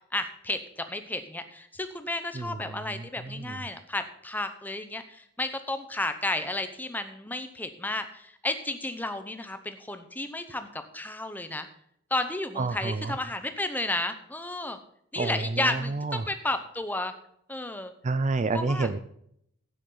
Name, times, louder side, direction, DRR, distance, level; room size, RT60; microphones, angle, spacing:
voice 1, 0.1-11.7 12.1-14.8 15.1-17.1 17.5-17.9 18.5-18.9, left 2 dB, 10° left, 8 dB, 0.8 m, -32 dB
voice 2, 2.3-3.6 12.6-13.2 15.2-16.3 18.0-19.0, right 3 dB, 35° right, 12 dB, 0.4 m, -30 dB
12.0 x 9.4 x 3.9 m, 0.71 s
head